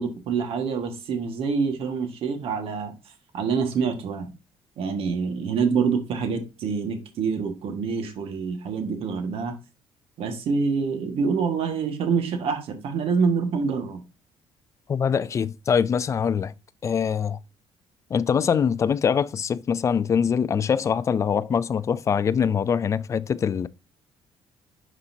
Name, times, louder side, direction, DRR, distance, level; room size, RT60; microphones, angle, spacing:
voice 1, 0.0-4.3 4.8-9.6 10.2-14.0, right 5 dB, 65° right, 1.6 m, -26 dB
voice 2, 14.9-16.5 16.8-17.4 18.1-23.7, left 7 dB, 30° left, 0.3 m, -23 dB
11.0 x 4.1 x 2.7 m
cardioid pair, 150°, 10 cm